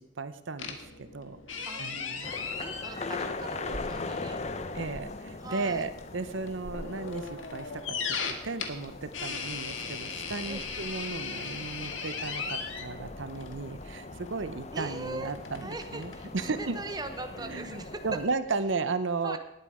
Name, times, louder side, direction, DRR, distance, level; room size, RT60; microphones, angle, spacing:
voice 1, 0.0-2.3 4.7-16.8 17.4-19.4, right 4 dB, 75° right, 12 dB, 0.8 m, -35 dB
sound 1, 0.6-18.7, left 5 dB, 85° left, 1.7 m, -39 dB
sound 2, 2.2-18.3, left 3 dB, 35° left, 0.8 m, -41 dB
voice 2, 2.2-4.5 5.4-5.9 10.5-10.6 14.7-15.3 15.6-18.0 19.2-19.4, right 2 dB, 20° right, 7 dB, 0.9 m, -41 dB
19.0 x 8.6 x 5.0 m, 0.87 s
head